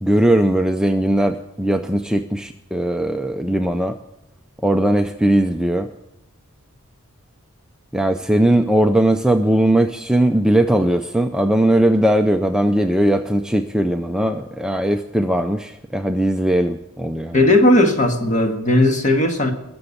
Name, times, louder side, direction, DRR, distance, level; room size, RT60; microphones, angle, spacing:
voice 1, 0.0-4.0 4.6-5.9 7.9-17.5, right 1 dB, 5° right, 5 dB, 0.5 m, -19 dB
voice 2, 17.3-19.5, left 1 dB, 35° left, 5 dB, 1.7 m, -16 dB
21.0 x 7.0 x 8.4 m, 0.87 s
head